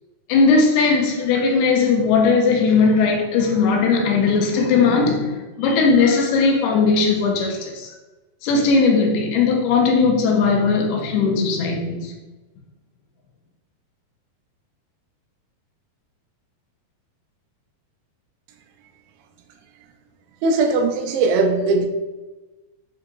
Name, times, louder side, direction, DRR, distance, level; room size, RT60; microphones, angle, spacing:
voice 1, 0.3-7.9 8.4-12.1, left 4 dB, 85° left, 1 dB, 2.7 m, -18 dB
voice 2, 20.4-21.9, right 3 dB, 85° right, 4 dB, 2.6 m, -19 dB
7.1 x 2.8 x 2.2 m, 1.2 s
omnidirectional pair, 4.6 m